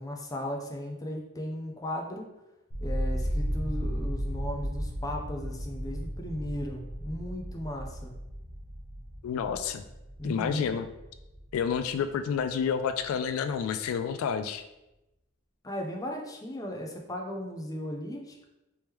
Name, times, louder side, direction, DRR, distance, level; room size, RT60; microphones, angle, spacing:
voice 1, 0.0-2.3 2.8-8.1 10.2-10.9 15.6-18.4, left 1 dB, 15° left, 1 dB, 0.4 m, -36 dB
sound 1, 2.7-12.7 13.0-13.7, equal, 55° left, 0.7 m, -35 dB
voice 2, 9.2-9.8 10.2-10.9 11.5-14.6, left 7 dB, 85° left, 13 dB, 0.3 m, -29 dB
3.5 x 2.9 x 3.1 m, 0.94 s
head